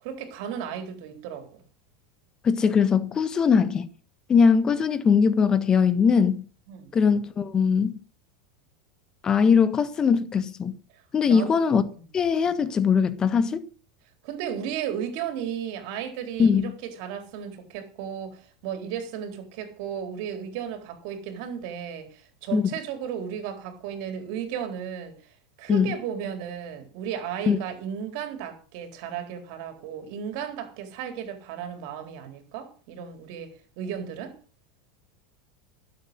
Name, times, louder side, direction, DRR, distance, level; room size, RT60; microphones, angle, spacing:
voice 1, 0.0-1.6 6.7-6.9 11.3-11.5 14.2-25.1 25.6-34.3, right 8 dB, 65° right, 3.9 m, -34 dB
voice 2, 2.4-3.9 4.3-6.4 6.9-7.9 9.2-10.7 11.1-11.8 12.1-13.6 16.4-16.7 22.5-22.7 25.7-25.9 27.5-27.6, left 6 dB, 25° left, 1.6 m, -21 dB
12.0 x 8.0 x 7.8 m
hypercardioid pair, 105°, 3 cm